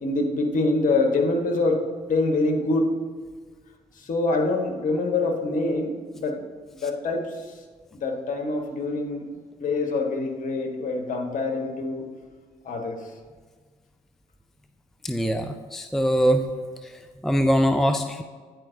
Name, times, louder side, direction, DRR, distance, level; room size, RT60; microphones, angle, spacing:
voice 1, 0.0-3.0 3.9-6.5 6.8-7.6 7.9-12.0 12.6-13.1, left 2 dB, 50° left, 2 dB, 1.2 m, -25 dB
voice 2, 15.0-16.5 16.8-18.2, equal, ahead, 7 dB, 0.4 m, -23 dB
9.5 x 4.4 x 2.7 m, 1.5 s
hypercardioid pair, 45°, 17 cm